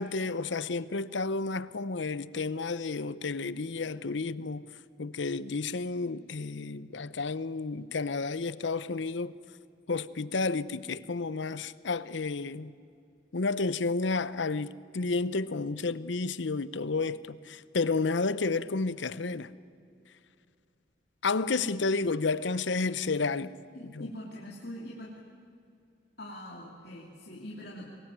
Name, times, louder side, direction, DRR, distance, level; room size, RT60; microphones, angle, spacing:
voice 1, 0.0-4.7 5.0-9.4 9.9-12.7 13.3-19.5 21.2-23.5 23.8-24.1, left 3 dB, 75° left, 0.8 m, -31 dB
voice 2, 23.7-25.1 26.2-27.9, left 1 dB, 55° left, 2.9 m, -43 dB
24.0 x 20.5 x 9.3 m
head